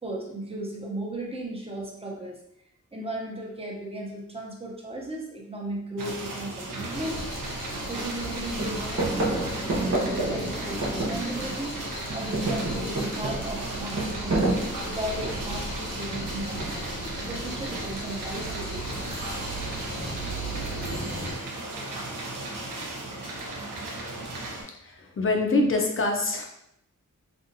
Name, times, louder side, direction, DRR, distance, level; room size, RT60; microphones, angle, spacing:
voice 1, 0.0-2.4 2.9-7.2 7.9-11.8 12.1-14.4 14.8-16.8 17.3-19.3, right 1 dB, 20° right, -2 dB, 0.8 m, -36 dB
sound 1, 6.0-24.6, right 2 dB, 85° right, 0.6 m, -36 dB
sound 2, 6.9-21.3, equal, 90° left, 0.9 m, -37 dB
sound 3, 7.2-7.3 7.7-8.3 8.5-11.7 12.0-15.6 16.6-17.1, right 2 dB, 55° right, 1.0 m, -29 dB
voice 2, 24.8-26.5, left 2 dB, 40° left, 1 dB, 0.5 m, -25 dB
2.6 x 2.4 x 2.6 m, 0.78 s
cardioid pair, 60°, 31 cm